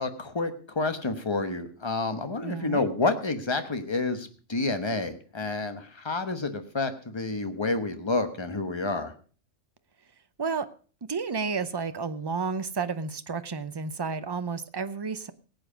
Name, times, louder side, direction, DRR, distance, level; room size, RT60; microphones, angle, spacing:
voice 1, 0.0-9.1, left 3 dB, 25° left, 8 dB, 1.1 m, -29 dB
voice 2, 2.4-2.9 10.4-10.7 11.1-15.3, right 5 dB, 35° right, 12 dB, 0.4 m, -31 dB
17.5 x 8.0 x 5.0 m, 0.40 s
omnidirectional pair, 1.3 m